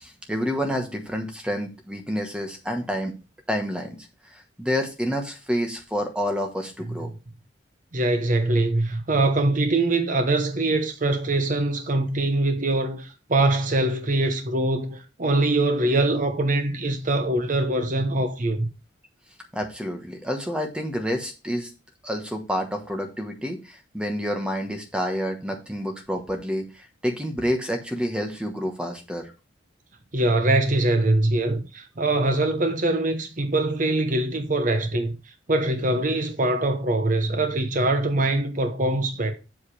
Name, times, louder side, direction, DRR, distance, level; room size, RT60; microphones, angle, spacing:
voice 1, 0.0-3.1 3.5-4.0 4.3-7.1 19.5-21.7 22.0-29.2, equal, 5° right, 1.1 m, -28 dB
voice 2, 7.9-18.7 30.1-35.2 35.5-39.3, right 2 dB, 40° right, 0.9 m, -23 dB
7.6 x 6.6 x 3.3 m
head